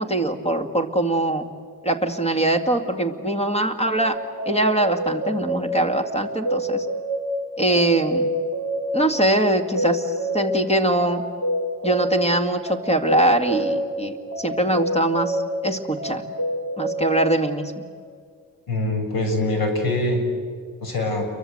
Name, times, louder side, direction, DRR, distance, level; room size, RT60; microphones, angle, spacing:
voice 1, 0.0-1.5 1.8-4.2 4.5-6.9 7.6-8.3 8.9-11.2 11.8-16.2 16.8-17.7, right 1 dB, 15° left, 6 dB, 2.3 m, -22 dB
sound 1, 4.0-17.2, equal, 50° left, 4.0 m, -28 dB
voice 2, 18.7-20.2 20.8-21.3, left 1 dB, 80° left, 4 dB, 6.8 m, -23 dB
29.5 x 23.5 x 8.0 m, 2.1 s
wide cardioid pair, 135°, 35 cm